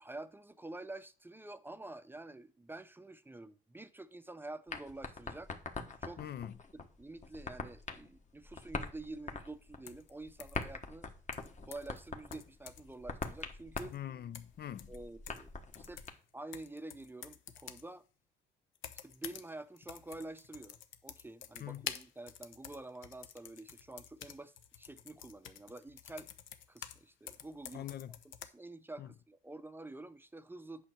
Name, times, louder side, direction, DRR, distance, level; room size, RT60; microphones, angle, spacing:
voice 1, 0.0-5.5 6.0-6.2 7.0-11.1 11.6-14.0 14.9-15.5 15.8-16.0 16.3-18.0 19.0-20.8 21.0-26.3 26.7-27.9 28.4-30.8, right 2 dB, 10° right, 0.5 m, -48 dB
sound 1, 4.7-16.1, left 4 dB, 35° left, 1.4 m, -44 dB
voice 2, 6.2-6.5 13.9-14.9 21.6-21.9 27.7-28.1 29.0-29.1, left 11 dB, 55° left, 0.5 m, -43 dB
sound 2, 9.9-10.1 10.4-10.6 11.3-12.0 12.3-12.9 13.2-13.4 13.8-14.0 14.3-15.5 15.7-17.9 18.8-19.5 19.8-27.0 27.3-28.5, left 10 dB, 80° left, 0.8 m, -49 dB
8.3 x 6.4 x 4.4 m
cardioid pair, 90°, 20 cm